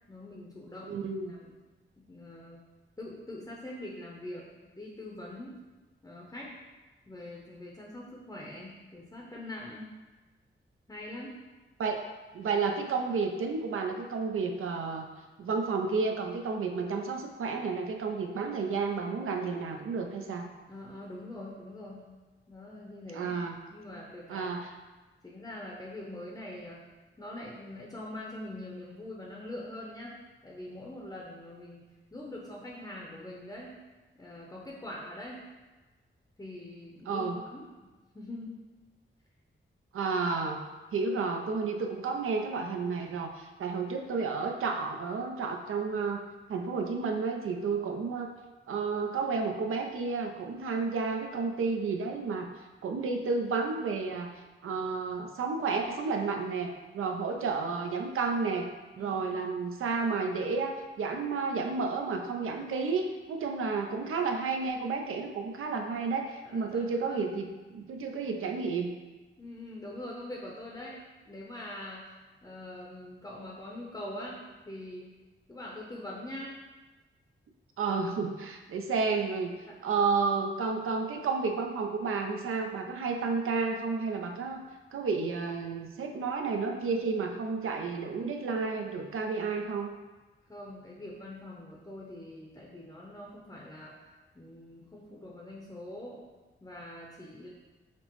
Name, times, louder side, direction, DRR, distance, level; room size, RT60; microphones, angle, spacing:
voice 1, 0.1-0.9 1.3-1.6 2.0-2.6 3.0-4.5 4.8-5.5 6.0-6.5 7.1-9.9 10.9-11.4 20.7-22.1 22.5-23.3 23.7-24.5 25.2-26.8 27.2-30.2 30.4-31.8 32.1-33.8 34.2-35.4 36.4-37.7 38.1-38.6 58.9-59.4 66.4-67.3 69.4-71.0 71.2-75.1 75.5-76.6 79.7-79.8 90.5-94.0 94.3-96.2 96.6-97.5, left 1 dB, 15° left, -3 dB, 0.6 m, -43 dB
voice 2, 0.9-1.4 11.8-12.0 12.3-15.1 15.4-20.5 23.1-23.5 24.3-24.7 37.1-37.4 39.9-40.6 40.9-48.3 48.7-52.5 52.8-54.3 54.6-58.7 59.0-67.5 67.7-68.9 77.8-79.5 79.8-84.6 84.9-89.9, right 4 dB, 80° right, 3 dB, 0.5 m, -31 dB
5.8 x 2.1 x 3.0 m, 1.2 s
cardioid pair, 80°, 21 cm